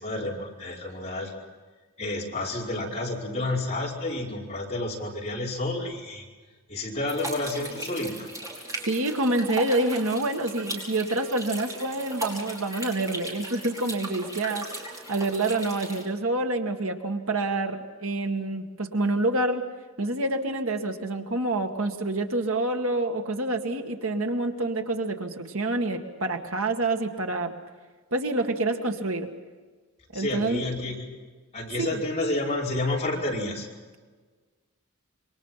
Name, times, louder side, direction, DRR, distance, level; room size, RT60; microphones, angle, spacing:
voice 1, 0.0-1.3 2.0-6.2 6.7-8.3 30.1-31.0 31.5-33.7, left 2 dB, 30° left, -3 dB, 5.1 m, -30 dB
sound 1, 7.1-16.0, right 1 dB, 15° right, 5.0 m, -37 dB
voice 2, 8.8-19.6 20.0-27.6 28.1-29.3 30.1-30.6 31.8-32.0, right 2 dB, 75° right, 5 dB, 2.1 m, -27 dB
27.0 x 24.0 x 5.9 m, 1.4 s
head